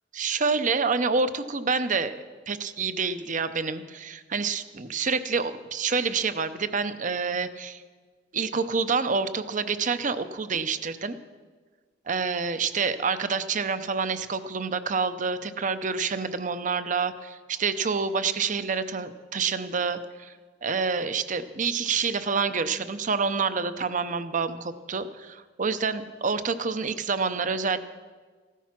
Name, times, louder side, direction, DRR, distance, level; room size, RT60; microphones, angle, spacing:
voice 1, 0.1-2.2 2.5-7.8 8.3-11.2 12.1-20.3 20.6-27.8, right 5 dB, 45° right, 12 dB, 0.7 m, -27 dB
15.5 x 13.0 x 5.9 m, 1.5 s
head